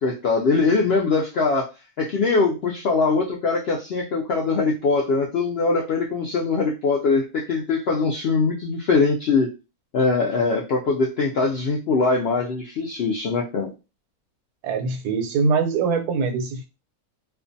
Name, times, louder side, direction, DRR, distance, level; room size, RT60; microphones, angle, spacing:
voice 1, 0.0-1.7 2.0-9.5 9.9-13.7, left 4 dB, 75° left, 0.5 m, -22 dB
voice 2, 14.6-16.7, right 4 dB, 90° right, 1.1 m, -23 dB
2.5 x 2.2 x 2.6 m
omnidirectional pair, 1.6 m